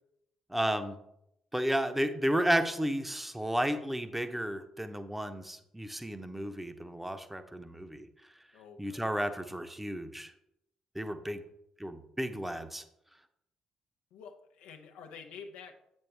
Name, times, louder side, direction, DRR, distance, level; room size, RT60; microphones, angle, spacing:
voice 1, 0.5-1.0 1.5-8.1 8.8-10.3 10.9-11.4 11.8-12.8, equal, 5° right, 8 dB, 0.9 m, -32 dB
voice 2, 8.5-9.1 11.3-11.4 14.1-15.8, left 6 dB, 65° left, 4 dB, 0.8 m, -49 dB
8.5 x 6.3 x 3.4 m, 0.78 s
figure-of-eight pair, 45°, 2 cm